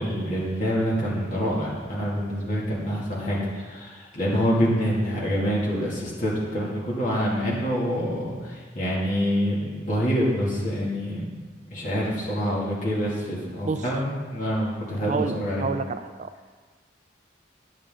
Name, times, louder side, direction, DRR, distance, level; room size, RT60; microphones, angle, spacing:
voice 1, 0.0-11.3 11.7-15.7, equal, 45° left, -5 dB, 2.4 m, -26 dB
voice 2, 15.1-16.3, right 4 dB, 40° right, 10 dB, 0.3 m, -29 dB
9.8 x 7.6 x 3.8 m, 1.4 s
head